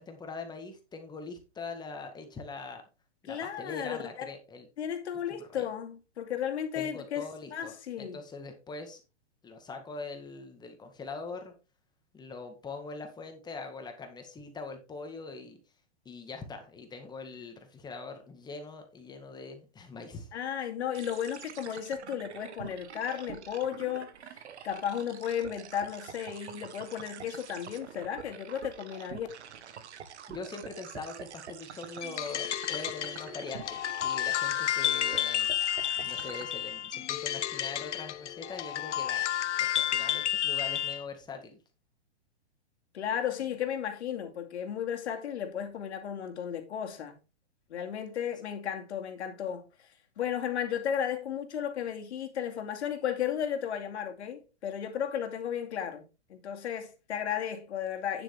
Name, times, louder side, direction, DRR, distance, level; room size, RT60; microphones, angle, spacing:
voice 1, 0.0-2.8 3.2-4.7 5.5-5.7 6.8-9.0 9.4-11.5 12.1-15.6 16.1-20.3 30.3-35.5 36.0-39.3 39.6-41.6, left 4 dB, 10° left, 1.9 m, -42 dB
voice 2, 3.3-4.3 4.8-8.2 20.3-24.4 24.6-29.3 42.9-47.1 47.7-49.7 50.2-56.0 56.3-58.2, left 9 dB, 70° left, 2.5 m, -34 dB
sound 1, 20.9-36.4, right 8 dB, 75° right, 1.5 m, -46 dB
sound 2, 32.0-41.0, left 11 dB, 90° left, 0.7 m, -31 dB
9.5 x 7.5 x 3.6 m
hypercardioid pair, 140°, 34 cm